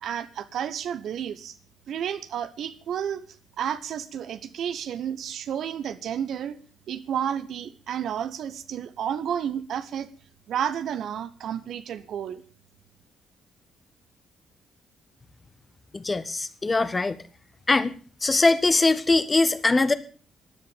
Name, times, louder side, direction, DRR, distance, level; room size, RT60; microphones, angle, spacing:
voice 1, 0.0-1.5 1.9-3.2 3.6-6.6 6.9-10.1 10.5-12.4, right 9 dB, 60° right, 12 dB, 1.1 m, -31 dB
voice 2, 15.9-17.2 17.7-17.9 18.2-19.9, left 3 dB, 25° left, 13 dB, 1.5 m, -22 dB
16.0 x 10.5 x 7.2 m, 0.41 s
figure-of-eight pair, 40°, 0 cm